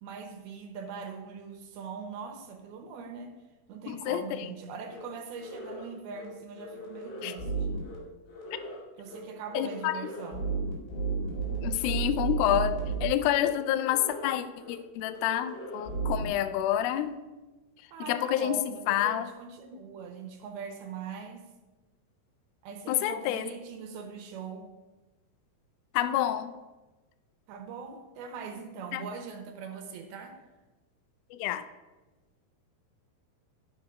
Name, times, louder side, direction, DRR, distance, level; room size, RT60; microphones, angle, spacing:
voice 1, 0.0-3.4 3.7-7.7 9.0-10.5 17.9-21.5 22.6-24.8 27.5-30.4, right 5 dB, 75° right, 4 dB, 2.6 m, -41 dB
voice 2, 3.9-4.5 7.2-7.4 9.5-10.0 11.6-17.2 18.0-19.3 22.9-23.5 25.9-26.5 28.9-29.0 31.3-31.6, left 12 dB, 85° left, 11 dB, 2.1 m, -28 dB
sound 1, 4.9-5.0 5.3-5.8 6.1-6.3 6.5-8.0 8.3-8.8 9.0-9.2 9.5-13.1 13.3-13.5 13.8-14.3 14.6-14.7 15.0-16.3, right 4 dB, 65° left, 4.0 m, -34 dB
11.0 x 6.6 x 5.3 m, 1.2 s
omnidirectional pair, 4.7 m